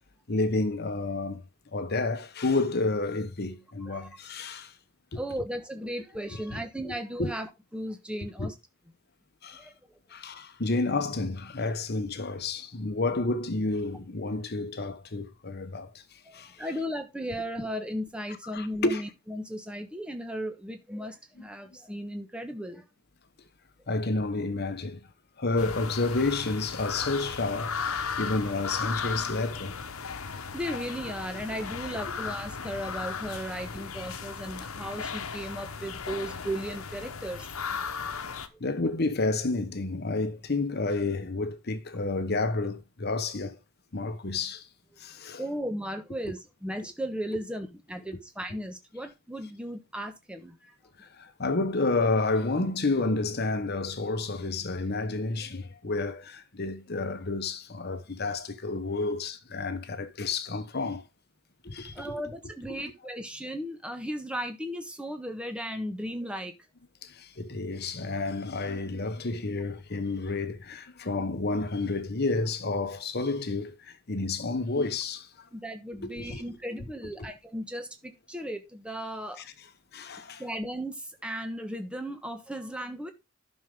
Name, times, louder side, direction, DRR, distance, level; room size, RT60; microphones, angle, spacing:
voice 1, 0.3-1.4 1.7-4.7 5.1-5.2 6.5-6.6 6.8-6.9 7.2-7.3 8.4-8.5 9.4-9.7 10.1-16.0 16.3-16.6 18.5-19.0 23.9-25.0 25.4-29.8 38.6-43.6 43.9-44.7 45.0-45.4 51.0-61.0 61.6-62.1 62.7-62.8 67.0-75.3 76.0-76.4 77.2-77.3 79.9-80.4, left 3 dB, 50° left, 1.1 m, -30 dB
voice 2, 5.1-8.5 9.6-9.7 16.3-22.8 30.5-37.5 38.5-38.6 45.4-50.7 61.9-66.5 75.5-79.4 80.4-83.1, equal, 5° right, 1.3 m, -36 dB
sound 1, 25.6-38.5, left 5 dB, 85° left, 1.1 m, -36 dB
11.5 x 6.3 x 3.7 m
head